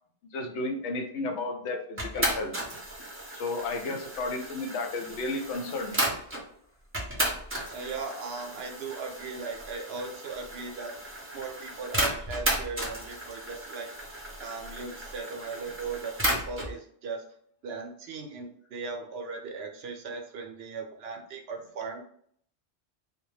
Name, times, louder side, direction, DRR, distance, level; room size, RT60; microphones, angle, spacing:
voice 1, 0.3-2.5 3.3-6.0, left 2 dB, 85° left, 3 dB, 0.9 m, -33 dB
sound 1, 2.0-6.4 6.9-16.7, right 1 dB, 15° right, 0.5 m, -34 dB
voice 2, 7.7-11.0 11.3-13.9 14.4-17.2 17.6-22.0, right 4 dB, 70° right, 2 dB, 0.8 m, -38 dB
2.2 x 2.1 x 3.1 m, 0.62 s
omnidirectional pair, 1.1 m